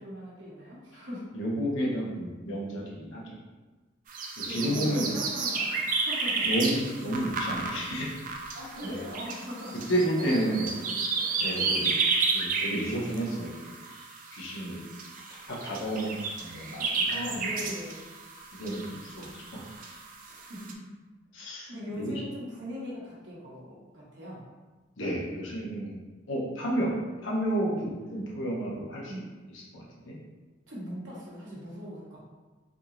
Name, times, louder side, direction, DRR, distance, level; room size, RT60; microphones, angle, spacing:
voice 1, 0.0-1.3 4.4-6.5 8.5-9.9 10.2-11.8 17.1-18.1 20.2-20.9 21.3-24.4 26.6-26.8 29.1-29.2 30.7-32.2, equal, 75° right, -6 dB, 1.1 m, -40 dB
voice 2, 1.3-3.4 4.4-5.1 6.4-8.2 8.8-8.9 9.9-10.7 11.4-11.9 12.3-13.7 14.3-14.8 15.5-17.4 18.5-19.6 21.3-22.1 25.0-25.9 26.3-26.9 27.2-29.1 29.7-30.1, right 1 dB, 90° left, -5 dB, 1.0 m, -31 dB
sound 1, 4.1-20.7, right 4 dB, 45° right, 0.4 m, -32 dB
3.6 x 2.9 x 2.5 m, 1.2 s
head